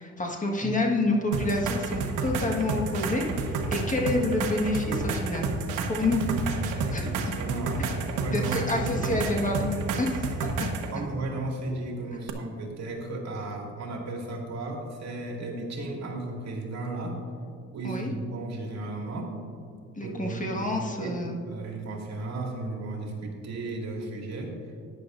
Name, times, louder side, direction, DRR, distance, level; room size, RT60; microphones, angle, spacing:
voice 1, 0.0-5.5 5.9-6.2 6.9-7.1 8.3-10.5 17.8-18.1 20.0-21.4, left 2 dB, 25° left, 0 dB, 1.6 m, -28 dB
sound 1, 1.3-10.9 12.3-12.4, right 3 dB, 85° right, 1.1 m, -30 dB
voice 2, 6.9-9.2 10.9-17.2 17.7-19.4 20.0-24.6, right 2 dB, 60° right, 0 dB, 2.3 m, -34 dB
14.0 x 10.0 x 2.6 m, 2.3 s
cardioid pair, 90°, 30 cm